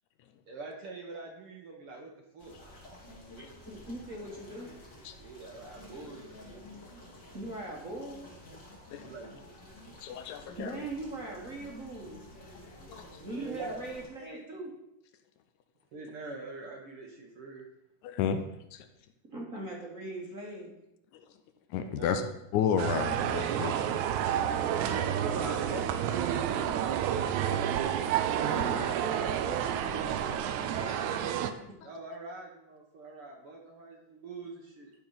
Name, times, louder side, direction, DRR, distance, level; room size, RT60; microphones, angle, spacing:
voice 1, 0.5-2.5 5.2-6.6 9.0-9.4 13.3-13.8 15.9-17.7 21.8-22.3 25.2-26.2 26.5-26.6 31.8-34.9, right 3 dB, 60° right, 1 dB, 1.7 m, -43 dB
sound 1, 2.4-14.1, left 1 dB, 40° left, 2.5 m, -51 dB
voice 2, 3.4-4.7 7.3-8.3 10.5-12.3 13.2-14.7 19.3-20.7 24.8-27.0 27.5-27.6 28.5-31.3, right 2 dB, 35° right, -3 dB, 1.5 m, -41 dB
voice 3, 10.0-10.8 12.9-13.2 18.0-18.9 21.1-21.4 21.7-22.3 22.5-24.0 27.4-27.5, left 8 dB, 80° left, 8 dB, 2.1 m, -33 dB
sound 2, 22.8-31.5, right 10 dB, 80° right, 1.9 m, -30 dB
12.0 x 4.6 x 5.6 m, 0.86 s
omnidirectional pair, 3.5 m